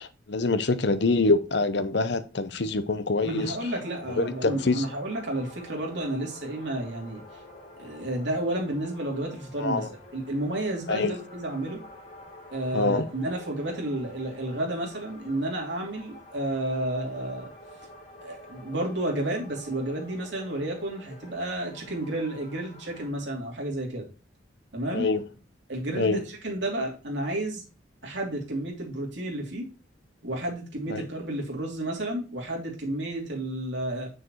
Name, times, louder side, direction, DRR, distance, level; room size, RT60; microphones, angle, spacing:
voice 1, 0.0-3.6 4.2-4.9 9.6-9.9 10.9-11.1 12.7-13.1 24.9-25.2 25.9-26.2 30.9-31.1, left 3 dB, 60° left, 0.7 m, -25 dB
voice 2, 3.2-7.2 7.8-9.9 10.1-11.8 12.5-17.5 18.2-24.0 24.7-25.1 25.7-27.6 28.0-29.7 30.2-34.1, right 1 dB, 65° right, 2.8 m, -31 dB
sound 1, 3.3-23.1, left 1 dB, 35° left, 4.1 m, -48 dB
7.0 x 6.4 x 3.0 m
head